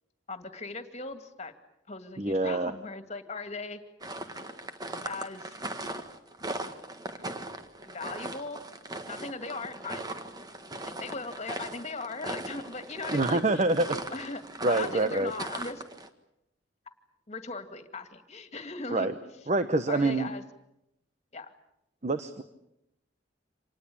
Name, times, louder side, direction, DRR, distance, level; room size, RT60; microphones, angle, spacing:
voice 1, 0.3-1.5 1.9-3.8 5.0-5.6 7.9-8.6 9.1-10.1 10.9-13.6 14.1-15.8 17.3-19.5 19.9-20.4 21.3-21.5, left 3 dB, 35° left, 8 dB, 2.3 m, -39 dB
voice 2, 2.2-2.7 13.1-14.0 14.6-15.3 18.9-19.1 19.5-20.3 22.0-22.4, right 2 dB, 40° right, 10 dB, 1.0 m, -26 dB
sound 1, 4.0-16.1, right 2 dB, 20° right, 1.6 m, -39 dB
26.5 x 19.5 x 8.7 m, 0.86 s
head